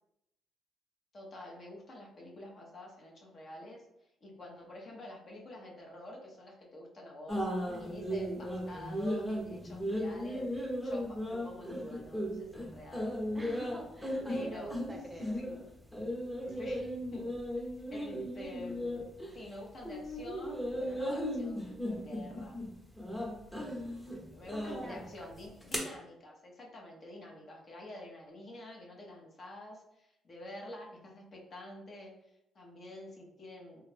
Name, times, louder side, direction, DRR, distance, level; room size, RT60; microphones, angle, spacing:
voice 1, 1.1-3.8 4.2-13.1 14.3-14.8 15.4-15.5 16.4-17.4 17.9-19.0 19.3-22.6 24.3-33.9, left 1 dB, 45° left, -1 dB, 0.9 m, -48 dB
sound 1, 7.3-19.5 19.8-25.8, equal, 10° left, 0.8 m, -36 dB
voice 2, 7.7-8.0 13.3-15.4 23.1-23.3 23.6-23.8 24.1-25.3, right 1 dB, 15° right, 2 dB, 0.6 m, -47 dB
3.3 x 2.4 x 3.3 m, 0.86 s
cardioid pair, 90°, 0 cm